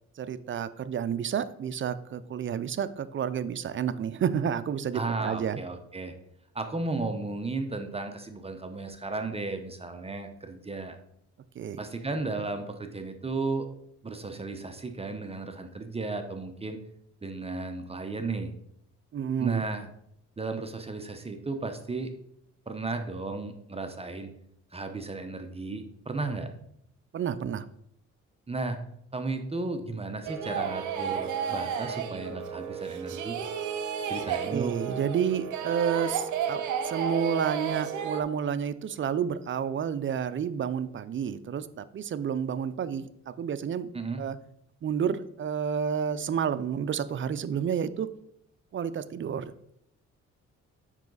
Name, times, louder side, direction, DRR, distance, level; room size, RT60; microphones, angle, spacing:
voice 1, 0.2-5.6 11.6-11.8 19.1-19.6 27.1-27.7 34.5-43.9 44.2-44.4 44.8-48.1 48.7-49.5, right 8 dB, 40° right, 14 dB, 0.5 m, -30 dB
voice 2, 4.9-6.1 6.5-11.0 11.8-13.7 14.0-16.8 17.2-18.5 19.4-19.9 20.4-22.1 22.7-24.3 24.7-26.5 28.5-28.8 29.1-33.4 34.1-34.7 43.9-44.2, right 3 dB, 20° right, 7 dB, 0.8 m, -34 dB
sound 1, 30.2-38.2, right 7 dB, 75° right, 0.8 m, -32 dB
7.3 x 5.7 x 4.0 m, 0.73 s
cardioid pair, 90°, 30 cm